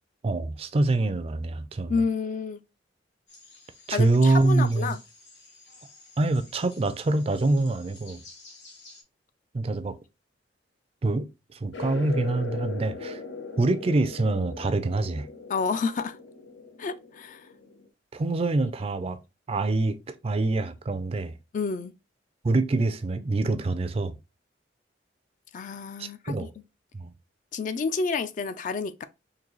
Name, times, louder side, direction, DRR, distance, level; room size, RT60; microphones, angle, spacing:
voice 1, 0.2-1.9 3.9-5.0 6.2-8.2 9.5-10.0 11.0-13.2 13.6-15.3 18.1-19.2 19.5-20.0 20.2-21.4 22.4-24.2 26.0-26.5 26.9-27.1, right 2 dB, 30° right, 0.4 m, -25 dB
voice 2, 1.9-2.6 3.9-5.0 15.5-16.2 16.8-17.5 21.5-21.9 25.5-26.4 27.5-29.0, left 4 dB, 45° left, 0.3 m, -29 dB
sound 1, 3.3-9.0, left 3 dB, 70° left, 1.4 m, -52 dB
sound 2, 11.7-17.9, left 4 dB, 90° left, 0.6 m, -39 dB
3.9 x 2.6 x 3.0 m
head